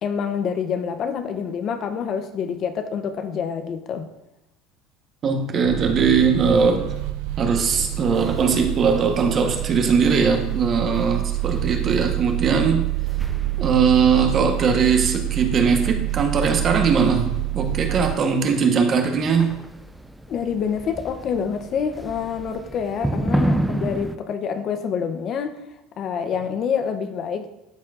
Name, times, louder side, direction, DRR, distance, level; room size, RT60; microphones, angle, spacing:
voice 1, 0.0-4.1 20.3-25.6 26.0-27.5, left 7 dB, 45° left, 9 dB, 0.6 m, -27 dB
voice 2, 5.2-6.9 7.4-12.9 13.6-19.6, right 5 dB, 40° right, 5 dB, 1.0 m, -20 dB
sound 1, 5.7-18.2, right 20 dB, 70° right, 0.3 m, -27 dB
sound 2, 7.7-24.2, right 1 dB, 5° right, 0.4 m, -33 dB
12.0 x 4.4 x 2.4 m, 0.90 s
supercardioid pair, 110°, 0 cm